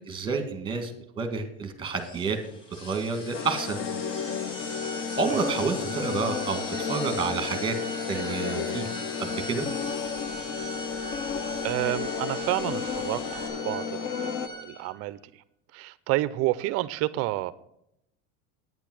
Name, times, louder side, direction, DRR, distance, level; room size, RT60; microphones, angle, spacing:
voice 1, 0.1-2.4 2.8-3.8 5.2-7.7 8.1-8.9 9.2-9.7, right 4 dB, 15° right, 1.6 m, -29 dB
sound 1, 1.9-13.5, left 3 dB, 85° left, 4.6 m, -42 dB
sound 2, 3.3-14.5, left 6 dB, 35° left, 0.6 m, -33 dB
Organ, 4.5-15.1, right 2 dB, 20° left, 3.2 m, -41 dB
voice 2, 11.6-15.2 15.7-17.5, right 17 dB, 40° right, 0.5 m, -30 dB
10.5 x 9.3 x 6.1 m
cardioid pair, 170°, 37 cm